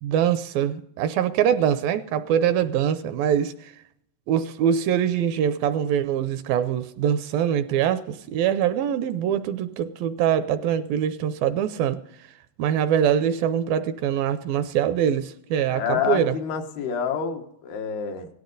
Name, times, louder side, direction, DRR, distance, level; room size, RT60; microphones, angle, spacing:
voice 1, 0.0-3.7 4.3-12.0 12.6-16.4, right 9 dB, 80° right, 11 dB, 2.2 m, -23 dB
voice 2, 15.7-18.3, left 7 dB, 85° left, 4 dB, 3.4 m, -28 dB
17.5 x 12.5 x 3.9 m, 0.74 s
omnidirectional pair, 4.5 m